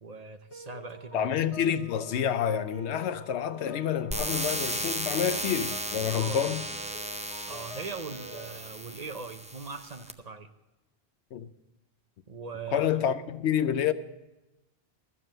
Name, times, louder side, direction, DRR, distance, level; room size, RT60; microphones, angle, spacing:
voice 1, 0.0-1.3 6.1-6.5 7.5-10.5 12.3-12.9, right 4 dB, 40° right, 0.7 m, -40 dB
sound 1, 0.5-8.6, left 1 dB, 30° left, 1.1 m, -47 dB
voice 2, 1.1-6.6 11.3-11.5 12.7-13.9, left 9 dB, 85° left, 0.9 m, -28 dB
sound 2, 4.1-10.1, right 1 dB, 10° right, 0.4 m, -35 dB
13.5 x 7.3 x 7.6 m
omnidirectional pair, 1.1 m